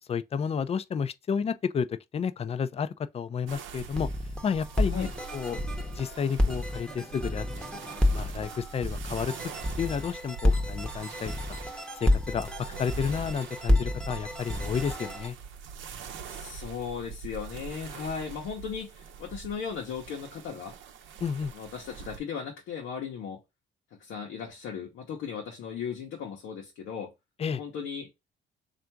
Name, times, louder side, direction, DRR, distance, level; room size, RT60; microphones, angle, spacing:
voice 1, 0.1-4.1 4.4-5.6 5.9-9.3 9.8-11.6 12.0-12.5 12.8-15.4 21.2-21.5 27.4-27.6, left 6 dB, 30° left, 0.4 m, -31 dB
sound 1, 3.5-22.2, right 6 dB, 75° right, 0.7 m, -44 dB
sound 2, 4.0-15.3, left 1 dB, 5° left, 0.8 m, -30 dB
voice 2, 16.3-20.7 21.5-23.4 24.0-27.1 27.5-28.1, left 6 dB, 90° left, 0.9 m, -37 dB
3.4 x 2.5 x 4.4 m
cardioid pair, 90°, 20 cm